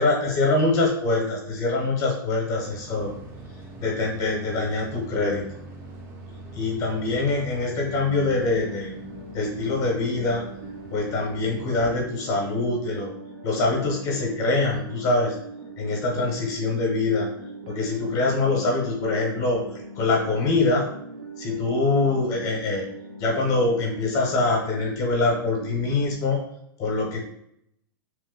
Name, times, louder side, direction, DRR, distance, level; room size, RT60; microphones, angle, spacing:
voice 1, 0.0-3.1 3.8-5.6 6.5-9.0 9.3-10.4 10.9-13.1 13.4-15.4 15.8-17.3 17.7-19.6 20.0-21.0 21.4-22.9 23.2-26.4 26.8-27.2, left 3 dB, 25° left, 1 dB, 0.6 m, -24 dB
sound 1, 2.6-12.1, right 2 dB, 20° right, 0.4 m, -43 dB
sound 2, 7.7-26.1, right 2 dB, 65° right, 0.6 m, -40 dB
2.9 x 2.1 x 3.5 m, 0.73 s
supercardioid pair, 155°, 12 cm